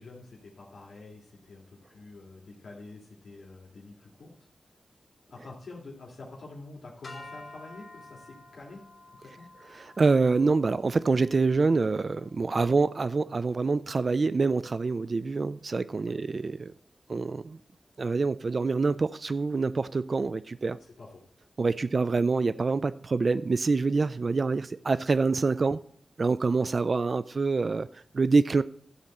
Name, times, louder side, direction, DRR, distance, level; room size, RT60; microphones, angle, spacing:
voice 1, 0.0-4.3 5.3-8.8 9.2-9.5 16.1-16.2 20.8-21.1, left 3 dB, 70° left, 2.1 m, -47 dB
sound 1, 7.0-13.4, left 2 dB, 50° left, 3.2 m, -51 dB
voice 2, 9.7-16.7 17.1-17.6 18.0-20.8 21.6-25.8 26.2-28.6, right 4 dB, 50° right, 0.3 m, -26 dB
12.5 x 4.2 x 7.7 m
wide cardioid pair, 85°, 0 cm